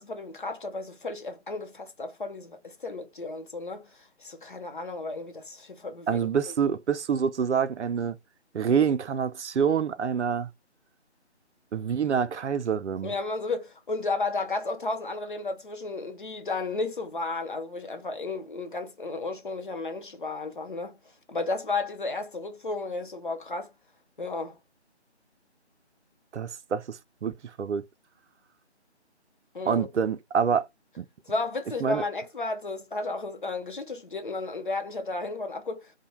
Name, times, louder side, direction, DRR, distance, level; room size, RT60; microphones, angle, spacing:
voice 1, 0.1-6.2 6.5-6.8 13.0-21.0 21.3-23.7 24.2-24.6 29.5-29.9 31.3-35.9, left 3 dB, 45° left, 0.6 m, -33 dB
voice 2, 6.1-8.2 8.5-10.5 11.7-13.1 26.3-27.8 29.6-30.7 31.0-31.1 31.8-32.0, right 7 dB, 80° right, 0.5 m, -26 dB
2.6 x 2.1 x 3.0 m
figure-of-eight pair, 160°, 34 cm